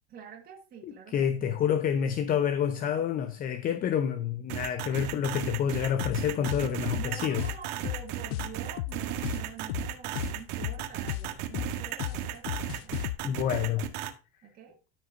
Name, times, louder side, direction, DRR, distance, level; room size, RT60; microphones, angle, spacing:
voice 1, 0.1-1.6 4.9-5.2 7.0-13.0 14.4-14.8, right 7 dB, 30° right, 2.4 m, -47 dB
voice 2, 0.8-7.5 13.2-13.9, left 8 dB, 30° left, 0.7 m, -28 dB
sound 1, 4.5-14.1, right 11 dB, 70° right, 1.8 m, -35 dB
sound 2, 5.8-13.2, left 17 dB, 75° left, 0.5 m, -35 dB
14.5 x 5.0 x 2.6 m
supercardioid pair, 145°, 29 cm